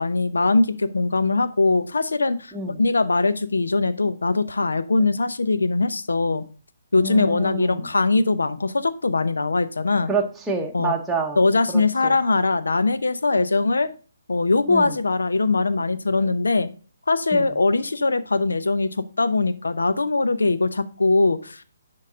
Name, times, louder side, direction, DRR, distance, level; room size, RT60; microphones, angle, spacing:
voice 1, 0.0-2.5 2.8-6.4 6.9-10.1 10.7-11.0 11.4-13.9 14.3-16.7 17.1-21.6, left 3 dB, 70° left, 13 dB, 0.7 m, -21 dB
voice 2, 7.0-7.9 10.1-11.4 11.7-12.2 14.7-14.9 17.3-17.4, right 4 dB, 5° right, 0 dB, 1.0 m, -28 dB
10.5 x 3.9 x 3.7 m, 0.38 s
figure-of-eight pair, 135°, 0 cm